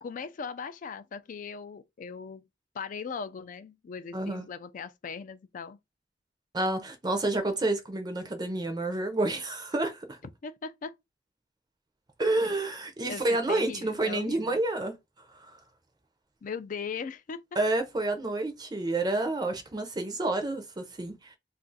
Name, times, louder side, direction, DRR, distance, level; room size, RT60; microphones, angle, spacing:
voice 1, 0.0-2.4 2.7-5.8 10.4-11.0 13.1-14.6 16.4-17.4, left 5 dB, 45° left, 0.3 m, -39 dB
voice 2, 4.1-4.5 6.5-10.2 12.2-14.9 15.3-15.6 17.6-21.4, right 2 dB, 25° right, 0.5 m, -29 dB
2.4 x 2.4 x 3.8 m
head